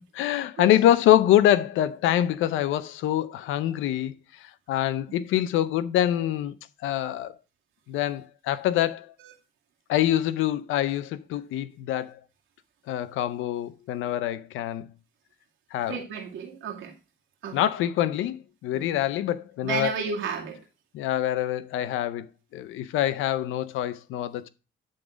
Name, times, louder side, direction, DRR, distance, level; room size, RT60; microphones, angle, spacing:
voice 1, 0.1-6.5 6.8-7.4 7.9-9.1 9.9-12.2 12.9-14.9 15.7-16.0 17.5-20.0 20.9-22.3 22.5-24.5, left 12 dB, 90° left, 0.6 m, -25 dB
voice 2, 15.9-16.9 17.4-17.6 18.7-18.9 19.6-20.6, right 6 dB, 85° right, 2.4 m, -32 dB
11.5 x 3.9 x 5.0 m
cardioid pair, 90°, 20 cm